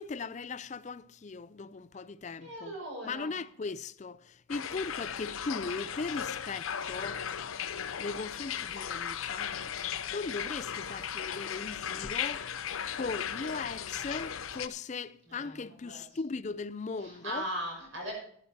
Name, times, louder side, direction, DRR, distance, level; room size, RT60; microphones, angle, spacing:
voice 1, 0.0-2.7 3.0-7.2 8.0-9.5 10.1-12.5 12.9-17.5, left 4 dB, 35° left, 0.4 m, -38 dB
voice 2, 2.4-3.4 15.3-15.5 15.9-16.2 17.0-18.1, equal, 70° right, 5.8 m, -39 dB
sound 1, 4.5-14.7, left 8 dB, 85° left, 0.7 m, -36 dB
12.5 x 11.0 x 4.6 m
head